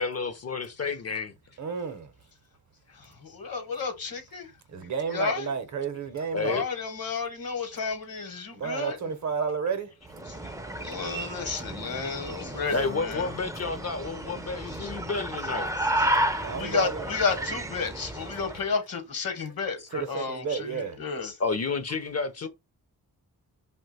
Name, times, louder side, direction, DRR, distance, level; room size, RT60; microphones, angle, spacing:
voice 1, 0.0-1.3 6.3-6.7 10.8-10.9 12.7-15.7 21.4-22.5, left 4 dB, 45° left, 0.5 m, -30 dB
voice 2, 1.6-2.1 4.7-6.6 8.5-9.9 16.3-17.0 17.4-17.5 19.9-21.0, right 6 dB, 50° right, 0.7 m, -31 dB
voice 3, 2.9-4.5 4.8-5.5 6.4-9.0 10.3-10.4 10.8-13.3 14.7-14.9 16.5-21.4, left 5 dB, 65° left, 1.0 m, -32 dB
sound 1, 10.1-18.7, right 1 dB, 10° right, 0.4 m, -32 dB
2.7 x 2.2 x 3.9 m
cardioid pair, 60°, 37 cm